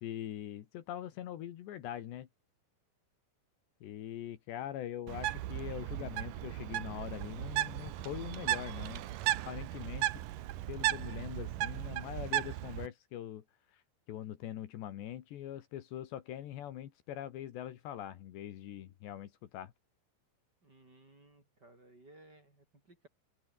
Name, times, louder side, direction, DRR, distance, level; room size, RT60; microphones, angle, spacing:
voice 1, 0.0-2.3 3.8-9.1 9.5-10.2 10.7-13.4 13.7-13.8 14.1-19.7, left 11 dB, 70° left, 3.7 m, -43 dB
Bird, 5.1-12.9, right 14 dB, 90° right, 1.8 m, -36 dB
Boom, 7.3-10.3, left 3 dB, 40° left, 8.6 m, -57 dB
voice 2, 20.6-23.1, right 2 dB, 20° right, 5.4 m, -59 dB
open air
omnidirectional pair, 5.4 m